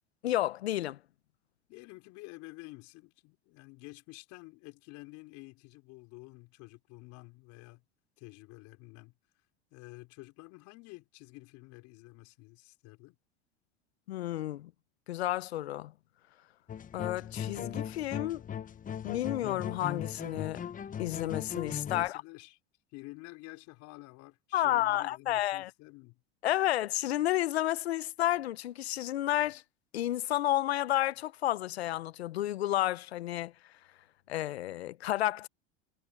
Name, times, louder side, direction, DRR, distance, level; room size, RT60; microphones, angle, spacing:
voice 1, 0.2-1.0 14.1-14.7 15.1-15.9 16.9-18.4 19.0-20.6 21.0-22.2 24.5-25.7 26.4-29.6 29.9-33.5 34.3-35.5, left 14 dB, 90° left, 0.9 m, -31 dB
voice 2, 1.7-7.8 8.2-9.1 9.7-13.2 21.9-22.6 22.9-26.2, left 24 dB, 60° left, 5.5 m, -50 dB
sound 1, 16.7-22.1, left 8 dB, 25° left, 1.0 m, -38 dB
hypercardioid pair, 90°, 31 cm